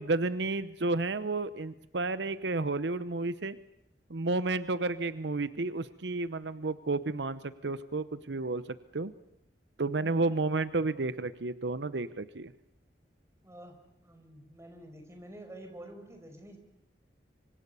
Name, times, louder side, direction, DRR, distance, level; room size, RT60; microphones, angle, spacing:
voice 1, 0.0-3.6 4.1-8.6 8.9-9.1 9.8-12.5, right 3 dB, 80° right, 14 dB, 0.9 m, -31 dB
voice 2, 13.4-13.8 14.0-16.6, right 1 dB, 15° right, 5 dB, 5.3 m, -48 dB
25.5 x 25.5 x 6.9 m, 0.81 s
head